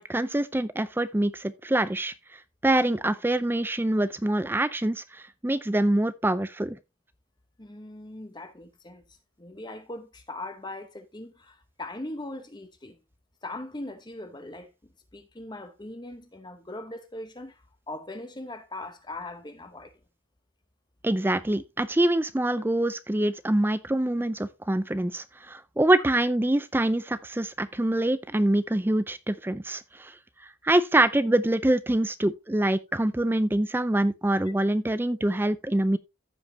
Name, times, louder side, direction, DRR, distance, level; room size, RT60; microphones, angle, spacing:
voice 1, 0.0-2.1 2.6-6.8 21.0-30.1 30.6-36.0, right 1 dB, 10° right, 0.4 m, -25 dB
voice 2, 7.6-13.0 13.4-14.7 15.1-19.9, left 2 dB, 20° left, 0.8 m, -40 dB
14.5 x 5.2 x 2.7 m
head